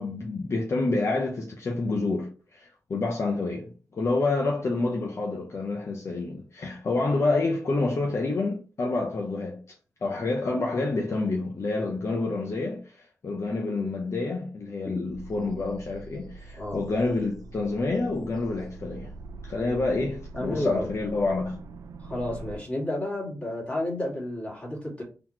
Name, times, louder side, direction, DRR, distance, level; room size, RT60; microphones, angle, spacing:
voice 1, 0.0-9.6 10.0-19.1 19.4-21.5, left 3 dB, 50° left, 0.7 m, -28 dB
sound 1, 15.1-22.6, right 3 dB, 85° right, 0.4 m, -44 dB
voice 2, 20.3-20.9 22.0-25.0, left 1 dB, 20° left, 1.9 m, -31 dB
3.9 x 2.9 x 3.0 m
wide cardioid pair, 105°, 6 cm